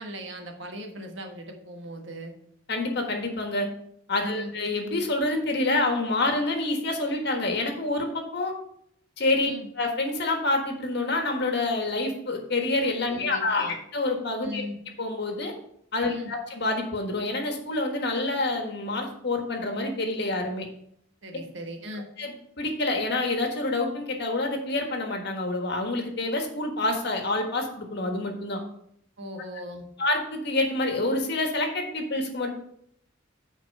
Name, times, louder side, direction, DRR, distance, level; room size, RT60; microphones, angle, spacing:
voice 1, 0.0-2.3 4.2-4.5 9.4-9.7 13.1-13.8 14.4-14.8 16.0-16.3 21.2-22.0 29.2-29.8, equal, 65° right, 3 dB, 1.4 m, -38 dB
voice 2, 2.7-3.7 4.1-8.5 9.2-9.5 9.8-14.6 15.0-15.5 15.9-20.6 22.2-28.6 30.0-32.5, left 2 dB, 55° left, 3 dB, 1.5 m, -27 dB
9.1 x 4.3 x 5.4 m, 0.70 s
head